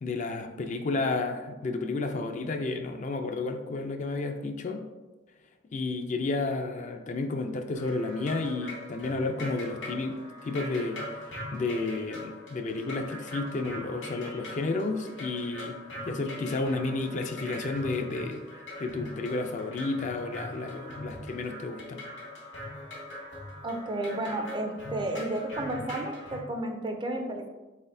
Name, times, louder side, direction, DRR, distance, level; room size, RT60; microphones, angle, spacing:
voice 1, 0.0-4.8 5.7-11.0 11.5-15.8 16.1-18.4 18.8-22.0, left 3 dB, 45° left, 5 dB, 0.4 m, -31 dB
sound 1, 7.7-26.4, left 1 dB, 90° left, 1.4 m, -41 dB
voice 2, 23.6-27.5, right 1 dB, 25° right, 4 dB, 0.4 m, -32 dB
4.1 x 4.1 x 2.6 m, 1.1 s
head